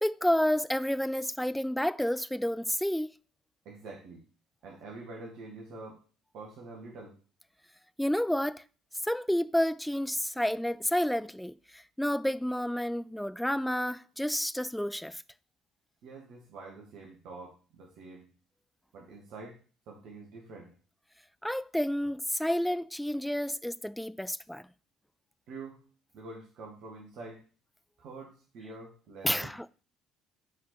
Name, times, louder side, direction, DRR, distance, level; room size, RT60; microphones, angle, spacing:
voice 1, 0.0-3.1 8.0-8.6 9.0-15.2 21.4-24.7 29.2-29.7, equal, 5° left, 0.3 m, -30 dB
voice 2, 3.6-4.2 4.6-6.0 6.3-7.2 16.0-18.3 18.9-19.6 19.9-20.7 25.5-25.8 26.1-27.4 28.0-29.6, right 3 dB, 55° right, 1.7 m, -46 dB
7.4 x 4.6 x 4.1 m
figure-of-eight pair, 55°, 0 cm